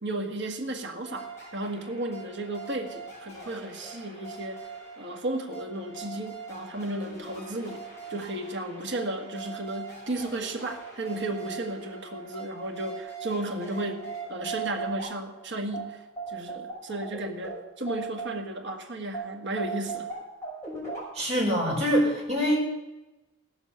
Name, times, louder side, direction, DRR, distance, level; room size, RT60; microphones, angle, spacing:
voice 1, 0.0-4.7 5.0-20.1, right 1 dB, 50° right, 3 dB, 1.6 m, -34 dB
sound 1, 1.0-18.7 19.1-21.0, right 4 dB, 10° left, 5.9 m, -40 dB
voice 2, 21.1-22.6, equal, 30° right, -3 dB, 4.8 m, -24 dB
16.0 x 7.3 x 7.0 m, 1.0 s
head